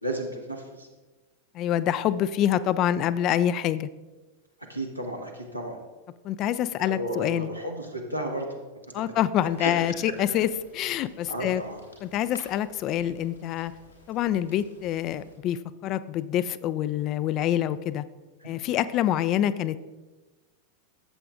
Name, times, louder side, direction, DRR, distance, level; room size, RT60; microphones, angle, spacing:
voice 1, 0.0-0.9 4.7-5.8 6.8-8.5 9.6-9.7 11.3-11.8 18.4-18.5, right 1 dB, 90° right, 0 dB, 1.3 m, -33 dB
voice 2, 1.5-3.9 6.2-7.5 8.9-11.6 12.0-13.7 14.1-18.0 18.4-19.8, left 11 dB, 35° left, 15 dB, 0.3 m, -26 dB
sound 1, 9.3-15.4, left 1 dB, 85° left, 2.6 m, -53 dB
13.0 x 7.7 x 2.4 m, 1.2 s
figure-of-eight pair, 90°, 0 cm